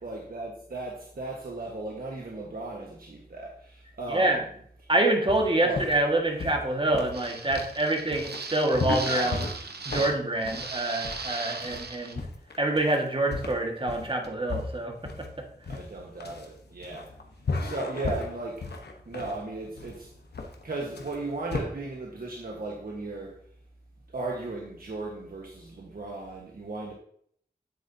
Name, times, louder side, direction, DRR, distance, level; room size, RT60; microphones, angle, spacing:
voice 1, 0.0-4.4 5.6-5.8 15.7-17.1 17.6-18.7 19.1-20.1 20.6-23.4 24.1-26.9, right 2 dB, 65° right, 1.5 m, -36 dB
voice 2, 4.1-4.4 4.9-9.5 9.9-12.2 12.6-14.9, right 2 dB, 30° right, 1.8 m, -26 dB
sound 1, 5.3-21.6, left 3 dB, 85° left, 1.1 m, -35 dB
sound 2, 7.1-10.1 10.4-12.1, right 4 dB, 85° right, 1.0 m, -37 dB
9.4 x 7.8 x 2.8 m
wide cardioid pair, 60°, 17 cm